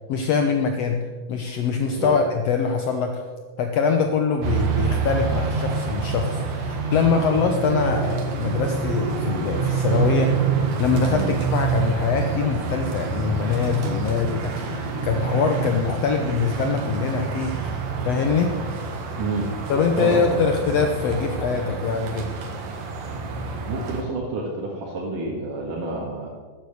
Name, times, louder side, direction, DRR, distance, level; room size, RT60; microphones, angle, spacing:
voice 1, 0.1-3.2 3.6-17.5 18.0-18.5 19.7-22.4, left 5 dB, 70° left, 5 dB, 1.8 m, -23 dB
sound 1, 4.4-24.0, right 5 dB, 65° right, 2.8 m, -27 dB
voice 2, 20.0-20.4 23.7-26.3, right 2 dB, 85° right, -4 dB, 3.4 m, -29 dB
14.0 x 9.7 x 6.6 m, 1.4 s
omnidirectional pair, 3.6 m